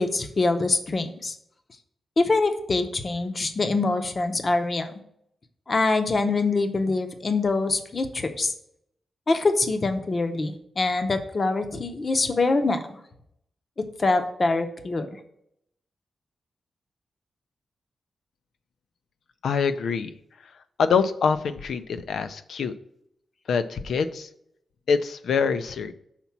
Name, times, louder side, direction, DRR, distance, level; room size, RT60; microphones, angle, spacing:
voice 1, 0.0-1.3 2.2-4.9 5.7-8.5 9.3-13.0 14.0-15.1, left 3 dB, 35° left, 8 dB, 0.6 m, -24 dB
voice 2, 19.4-20.1 20.8-22.7 23.5-24.3 24.9-25.9, left 5 dB, 85° left, 10 dB, 0.4 m, -25 dB
5.8 x 4.0 x 5.8 m, 0.75 s
wide cardioid pair, 150°, 0 cm